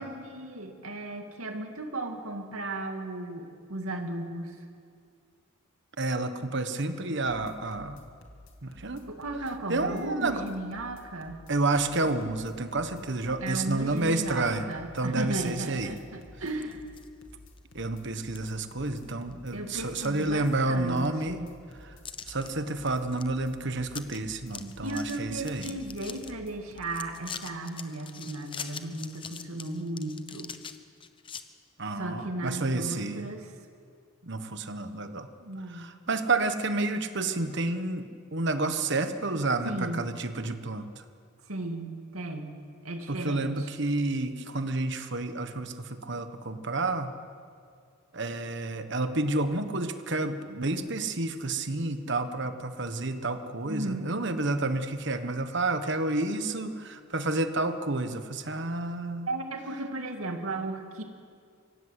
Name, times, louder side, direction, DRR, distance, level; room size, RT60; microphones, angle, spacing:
voice 1, 0.0-4.6 9.1-11.4 13.4-16.8 19.5-21.5 24.8-30.5 32.0-33.5 35.4-35.9 39.6-40.1 41.5-43.7 53.7-54.2 59.3-61.0, right 2 dB, 85° right, 4 dB, 2.5 m, -35 dB
voice 2, 6.0-8.0 8.6-9.0 9.7-10.4 11.5-14.6 14.9-15.9 17.7-21.4 22.3-25.7 31.8-33.3 34.2-35.3 35.7-38.1 38.3-40.9 43.1-47.1 48.1-59.3, right 2 dB, 55° right, 9 dB, 1.3 m, -30 dB
sound 1, 7.2-27.0, left 1 dB, 65° left, 2.5 m, -52 dB
sound 2, 16.5-17.1 17.6-17.7 18.4-18.5 18.9-19.3 19.7-20.8 21.1-21.2 22.1-22.5 22.8-23.2 23.5-23.6 23.9-24.2 24.5-26.3 26.8-31.4, left 7 dB, 25° left, 0.9 m, -43 dB
24.5 x 17.0 x 8.3 m, 2.2 s
head